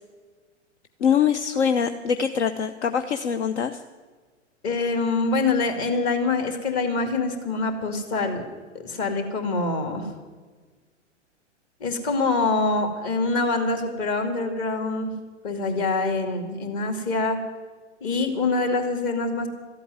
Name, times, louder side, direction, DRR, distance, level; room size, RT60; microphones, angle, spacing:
voice 1, 1.0-3.8, left 7 dB, 65° left, 9 dB, 0.7 m, -23 dB
voice 2, 4.6-8.5 8.8-10.1 11.8-15.1 15.4-17.4 18.0-19.5, left 3 dB, 35° left, 5 dB, 2.4 m, -25 dB
14.0 x 8.5 x 9.5 m, 1.4 s
figure-of-eight pair, 100°, 37 cm